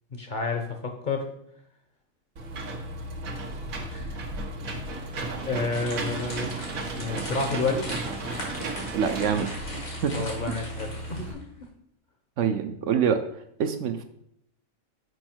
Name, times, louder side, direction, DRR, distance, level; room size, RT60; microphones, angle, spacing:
voice 1, 0.1-1.3 3.5-3.6 3.9-4.2 4.7-7.8 10.1-11.4, left 4 dB, 45° left, 3 dB, 0.8 m, -31 dB
Engine / Mechanisms, 2.4-11.3, right 2 dB, 90° right, 1.5 m, -34 dB
sound 1, 5.7-11.4, left 1 dB, 90° left, 2.5 m, -40 dB
voice 2, 8.9-9.5 10.0-10.1 10.5-10.6 12.4-13.2 13.6-14.0, right 7 dB, 70° right, 8 dB, 0.8 m, -25 dB
6.3 x 5.3 x 4.4 m, 0.73 s
omnidirectional pair, 1.4 m